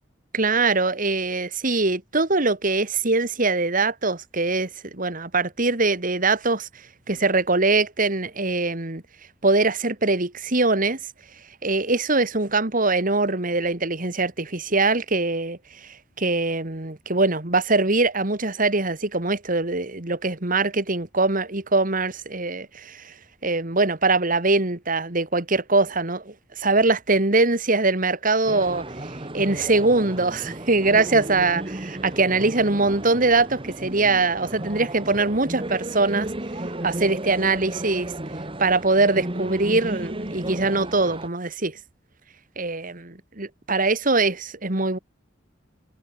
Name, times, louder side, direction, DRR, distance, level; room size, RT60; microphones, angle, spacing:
voice 1, 0.3-6.7 7.1-9.0 9.4-11.0 11.6-23.1 23.4-28.8 29.3-36.3 36.8-38.1 38.6-41.8 42.6-44.3 44.6-45.0, right 3 dB, 45° right, 2.5 m, -22 dB
sound 1, 28.4-41.3, right 1 dB, 30° right, 2.5 m, -34 dB
head